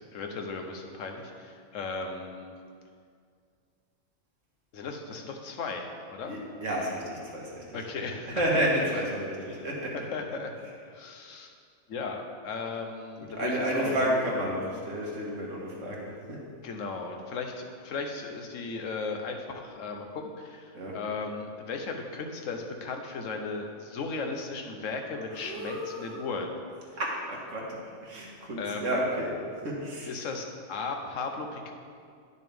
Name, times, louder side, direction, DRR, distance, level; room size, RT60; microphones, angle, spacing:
voice 1, 0.1-2.5 4.7-6.3 7.7-8.4 8.7-8.8 9.5-11.5 11.9-14.1 16.6-26.5 28.6-29.0 30.1-31.7, left 4 dB, 85° left, 4 dB, 1.2 m, -36 dB
voice 2, 6.2-10.1 10.6-10.7 13.2-16.4 20.7-21.0 25.3-26.2 27.0-29.3 29.6-30.1, right 1 dB, 80° right, -3 dB, 1.9 m, -31 dB
10.5 x 6.7 x 3.5 m, 2.2 s
omnidirectional pair, 1.3 m